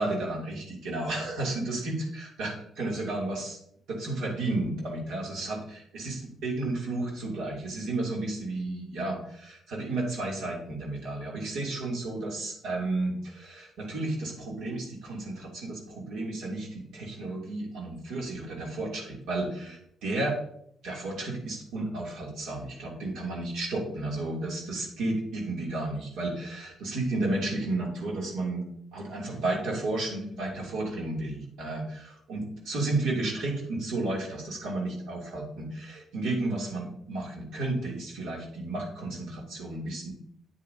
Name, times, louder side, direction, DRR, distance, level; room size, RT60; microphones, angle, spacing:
voice 1, 0.0-3.6 3.9-20.4 20.8-28.6 28.9-40.1, right 2 dB, 85° right, -2 dB, 2.9 m, -32 dB
8.9 x 8.5 x 2.8 m, 0.69 s
cardioid pair, 90°, 0 cm